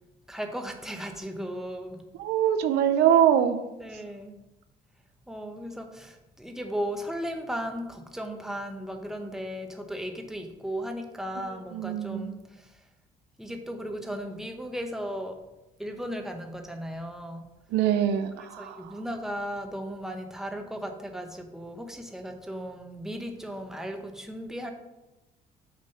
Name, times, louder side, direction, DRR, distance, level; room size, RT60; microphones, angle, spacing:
voice 1, 0.3-2.0 3.8-4.4 5.3-12.8 13.4-15.4 15.8-17.4 18.6-24.7, equal, 5° right, 4 dB, 0.9 m, -36 dB
voice 2, 2.2-3.6 11.4-12.4 17.7-18.9, right 9 dB, 85° right, 10 dB, 0.6 m, -24 dB
6.5 x 4.1 x 5.4 m, 0.97 s
cardioid pair, 110°, 17 cm